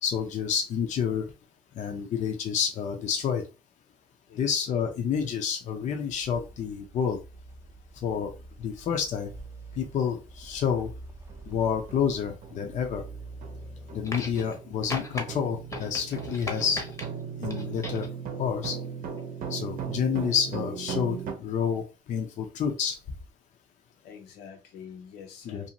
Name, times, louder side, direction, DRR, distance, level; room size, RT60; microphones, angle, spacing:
voice 1, 0.0-1.3 1.8-3.5 4.4-7.2 8.0-9.3 9.8-10.9 11.5-13.0 13.9-16.8 17.4-18.1 18.4-18.8 19.5-23.0 25.4-25.7, left 7 dB, 45° left, 0.5 m, -29 dB
voice 2, 4.3-4.6 24.0-25.7, left 7 dB, 75° left, 0.7 m, -46 dB
sound 1, 5.7-16.5, right 2 dB, 15° right, 0.5 m, -47 dB
sound 2, 10.7-10.8 11.3-11.5 11.9-21.3, right 7 dB, 55° right, 0.7 m, -38 dB
sound 3, 14.0-14.6 14.9-15.2 15.7-17.1 17.5-18.1 19.2-19.3, left 2 dB, 15° left, 0.7 m, -37 dB
2.6 x 2.4 x 2.8 m
cardioid pair, 110°, 17 cm